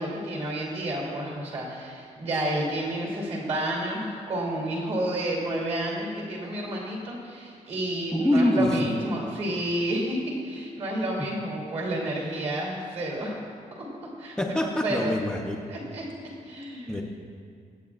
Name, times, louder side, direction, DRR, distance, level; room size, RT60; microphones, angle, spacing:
voice 1, 0.0-13.4 13.8-13.9 14.2-15.2 15.7-16.1 16.4-17.0, right 1 dB, 50° right, -2 dB, 2.7 m, -30 dB
voice 2, 8.1-8.8 11.2-11.3 14.4-15.7 16.9-17.0, left 1 dB, 5° left, 0 dB, 0.5 m, -25 dB
22.5 x 8.4 x 2.4 m, 2.3 s
wide cardioid pair, 180°, 14 cm